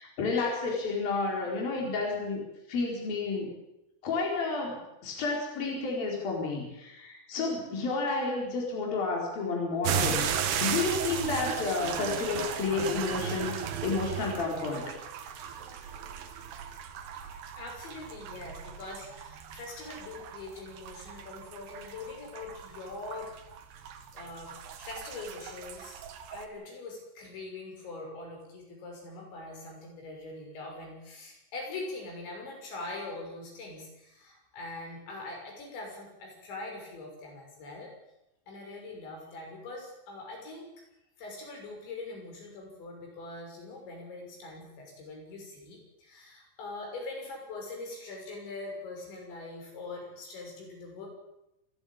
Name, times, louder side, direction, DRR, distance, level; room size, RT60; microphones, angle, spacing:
voice 1, 0.0-2.4 2.7-3.5 4.0-10.3 10.6-14.9, left 3 dB, 55° left, -1 dB, 6.2 m, -31 dB
sound 1, 9.8-26.5, right 8 dB, 70° right, 3.7 m, -36 dB
voice 2, 17.6-23.3 23.9-26.0 26.3-37.9 38.5-40.7 41.2-51.1, left 2 dB, 80° left, 1 dB, 8.5 m, -42 dB
28.0 x 15.0 x 8.9 m, 0.89 s
omnidirectional pair, 5.1 m